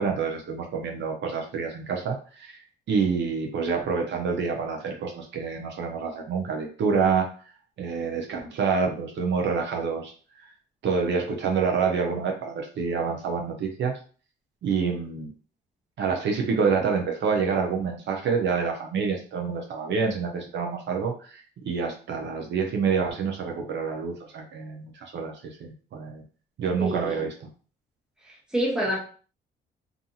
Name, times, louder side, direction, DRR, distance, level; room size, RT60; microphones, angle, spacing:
voice 1, 0.0-2.6 2.9-7.3 7.8-10.1 10.4-10.5 10.8-13.9 14.6-15.3 16.0-26.2 26.6-27.5, right 5 dB, 65° right, 1 dB, 0.6 m, -27 dB
voice 2, 26.8-27.2 28.3-29.0, equal, 5° right, -4 dB, 1.1 m, -28 dB
2.5 x 2.4 x 2.7 m, 0.40 s
cardioid pair, 90°, 20 cm